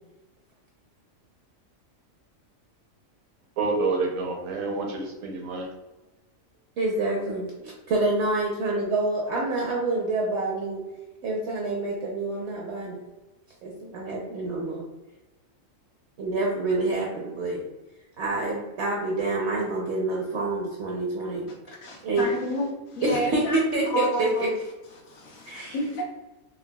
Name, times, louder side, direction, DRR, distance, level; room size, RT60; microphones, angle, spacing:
voice 1, 3.6-5.7, right 3 dB, 80° right, 1.1 m, -28 dB
voice 2, 6.8-7.5 7.9-10.8 11.2-13.0 13.6-14.8 16.2-17.6 18.2-21.5 22.0-22.3 23.0-24.5 25.5-25.8, right 2 dB, 65° right, 0.8 m, -27 dB
voice 3, 21.8-23.6 23.9-24.5 25.0-26.0, left 1 dB, 80° left, 1.2 m, -30 dB
3.8 x 2.3 x 2.2 m
omnidirectional pair, 1.4 m